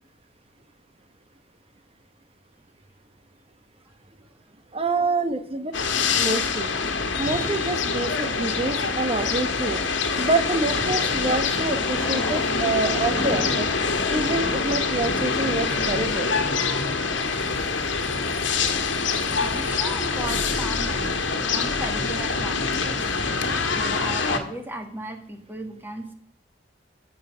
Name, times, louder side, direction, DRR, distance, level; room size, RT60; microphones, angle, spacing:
voice 1, 4.7-5.7 6.2-6.7 7.2-9.8 10.2-13.7 14.1-16.4, right 3 dB, 30° right, 10 dB, 1.0 m, -27 dB
sound 1, 5.7-24.4, left 4 dB, 80° left, 1.5 m, -25 dB
Fireworks, 7.3-8.9 9.7-9.8 10.5-15.8 16.8-18.6 19.2-19.7, equal, 60° right, 3.1 m, -42 dB
Fireworks 2, 11.8-15.5 16.2-16.3 16.5-16.6 16.8-16.9 17.4-17.7, left 1 dB, 10° left, 1.3 m, -39 dB
voice 2, 19.4-23.0 23.6-26.1, right 1 dB, 10° right, 5 dB, 1.6 m, -36 dB
13.0 x 5.8 x 6.1 m, 0.69 s
head